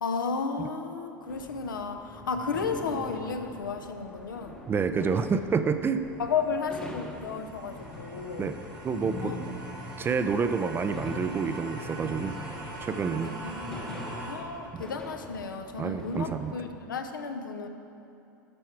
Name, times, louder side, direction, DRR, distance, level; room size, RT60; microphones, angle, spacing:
voice 1, 0.0-4.6 6.2-8.5 9.2-9.4 13.2-17.7, left 5 dB, 80° left, 6 dB, 0.6 m, -33 dB
sound 1, 1.3-16.6, left 1 dB, 10° left, 0.8 m, -43 dB
voice 2, 4.7-6.0 8.4-8.5 8.8-9.3 10.0-12.4 12.8-13.4 14.7-14.8 15.8-16.5, right 5 dB, 20° right, 10 dB, 0.4 m, -28 dB
sound 2, 5.8-14.3, right 2 dB, 85° right, 1.9 m, -43 dB
11.5 x 4.7 x 4.4 m, 2.8 s
figure-of-eight pair, 85°, 11 cm